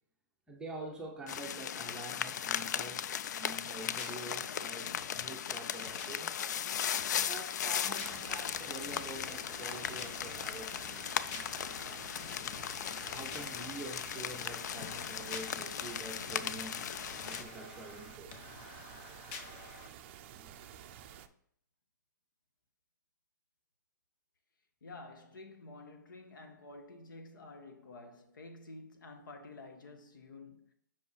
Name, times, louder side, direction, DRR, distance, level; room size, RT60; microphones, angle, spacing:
voice 1, 0.5-6.4 7.2-11.5 11.8-12.1 13.0-16.9 17.1-18.5 20.4-20.5, right 2 dB, 5° right, 0.7 m, -47 dB
sound 1, 1.3-17.4, left 9 dB, 60° left, 0.4 m, -37 dB
sound 2, 3.8-19.9, left 5 dB, 40° left, 0.8 m, -50 dB
Pink Noise, 8.0-21.3, right 9 dB, 35° right, 0.4 m, -51 dB
voice 2, 24.8-30.7, left 2 dB, 80° left, 1.2 m, -50 dB
5.5 x 5.2 x 3.3 m
hypercardioid pair, 150°, 11 cm